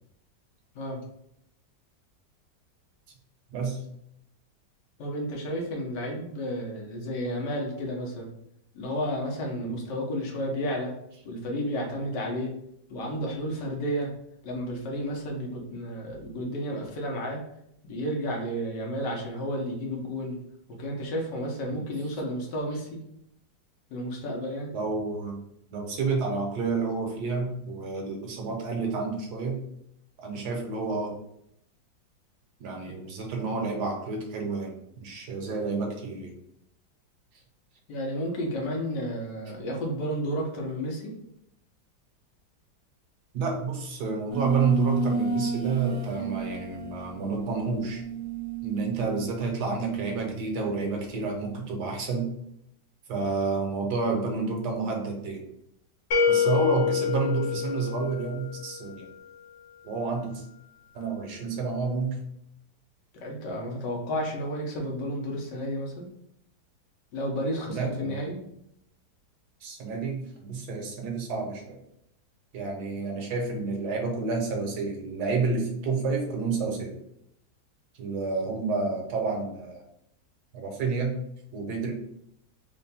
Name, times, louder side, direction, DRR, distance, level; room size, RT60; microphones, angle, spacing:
voice 1, 3.5-3.8 9.6-9.8 21.7-21.8 24.7-25.4 25.7-29.6 30.2-31.1 32.6-36.3 43.3-48.0 48.6-52.3 53.1-55.4 56.3-59.1 59.8-60.4 60.9-62.2 67.7-68.3 69.6-71.8 72.5-76.9 78.0-79.9 80.5-81.2 81.5-81.9, right 4 dB, 70° right, 1 dB, 1.4 m, -29 dB
voice 2, 5.0-8.3 8.7-10.9 11.2-12.5 12.9-14.1 14.4-17.4 17.8-20.4 20.7-22.9 23.9-24.7 32.9-33.0 37.9-41.1 63.1-66.1 67.1-68.4, equal, 80° left, 0 dB, 1.5 m, -32 dB
sound 1, 44.3-50.4, right 4 dB, 40° right, 0.5 m, -32 dB
sound 2, 56.1-59.0, left 6 dB, 45° left, 1.5 m, -26 dB
3.7 x 2.2 x 4.0 m, 0.76 s
omnidirectional pair, 1.9 m